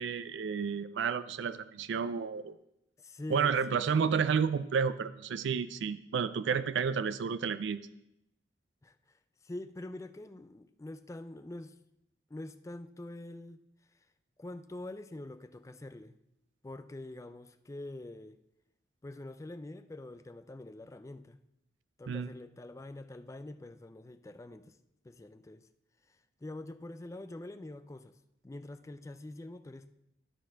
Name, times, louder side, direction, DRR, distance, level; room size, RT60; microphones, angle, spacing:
voice 1, 0.0-2.5 3.3-7.8 22.1-22.3, right 6 dB, 85° right, 0.4 m, -31 dB
voice 2, 3.0-3.8 8.8-8.9 9.4-11.8 12.3-13.6 14.4-16.2 16.6-18.4 19.0-21.4 22.0-24.8 25.0-25.7 26.1-28.2 28.4-29.9, left 2 dB, 15° left, 0.4 m, -45 dB
12.0 x 4.3 x 4.6 m
head